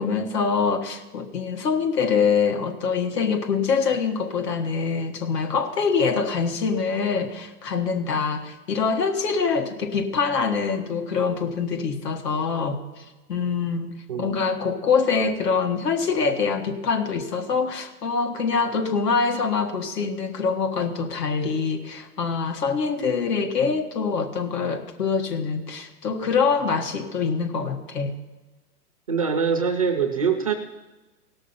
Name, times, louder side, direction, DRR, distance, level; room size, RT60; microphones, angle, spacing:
voice 1, 0.0-13.0 13.3-28.1, left 5 dB, 80° left, 5 dB, 1.8 m, -24 dB
voice 2, 29.1-30.5, right 6 dB, 25° right, 4 dB, 0.4 m, -23 dB
17.5 x 6.4 x 5.6 m, 1.2 s
hypercardioid pair, 145°, 48 cm